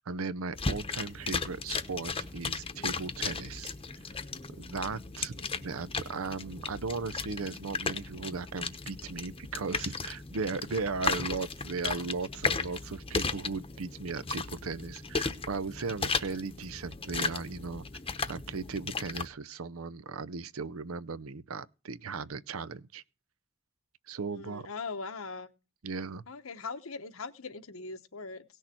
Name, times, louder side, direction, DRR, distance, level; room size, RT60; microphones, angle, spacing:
voice 1, 0.0-3.7 4.6-5.3 5.6-17.9 18.3-23.0 24.1-24.7 25.8-26.2, right 4 dB, 85° right, 0.7 m, -37 dB
sound 1, 0.5-19.3, left 4 dB, 25° left, 0.9 m, -36 dB
voice 2, 24.3-25.5 26.3-28.4, left 4 dB, 80° left, 1.1 m, -40 dB
17.5 x 6.5 x 4.4 m
head